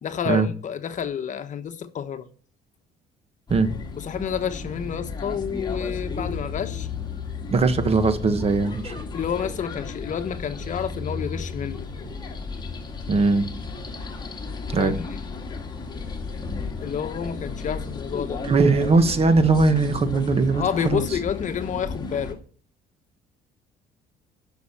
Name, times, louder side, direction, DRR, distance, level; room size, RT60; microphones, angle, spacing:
voice 1, 0.0-2.3 4.0-6.9 9.1-11.9 14.8-15.2 16.8-18.4 20.5-22.4, left 8 dB, 50° left, 1.2 m, -29 dB
sound 1, 3.5-22.3, left 4 dB, 25° left, 2.4 m, -34 dB
voice 2, 7.5-9.0 13.1-13.5 14.7-15.0 18.4-21.0, right 3 dB, 35° right, 1.4 m, -20 dB
11.0 x 6.5 x 7.4 m
cardioid pair, 110°, 17 cm